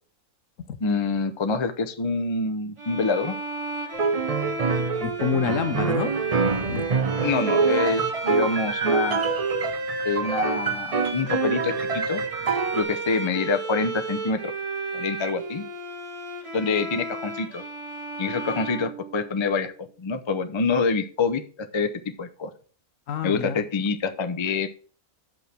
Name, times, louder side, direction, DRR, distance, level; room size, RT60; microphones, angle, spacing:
voice 1, 0.8-3.4 7.2-9.2 10.0-12.2 12.7-14.5 14.9-15.6 16.5-17.6 18.2-19.7 20.0-21.4 21.7-21.9 22.2-22.5 23.2-24.7, left 4 dB, 35° left, 0.4 m, -26 dB
sound 1, 2.8-19.6, right 2 dB, 20° right, 1.2 m, -33 dB
sound 2, 3.9-12.8, right 5 dB, 45° right, 0.5 m, -26 dB
voice 2, 5.0-6.1 6.5-6.9 23.1-23.6, left 7 dB, 65° left, 1.1 m, -28 dB
6.5 x 5.6 x 5.9 m
omnidirectional pair, 1.5 m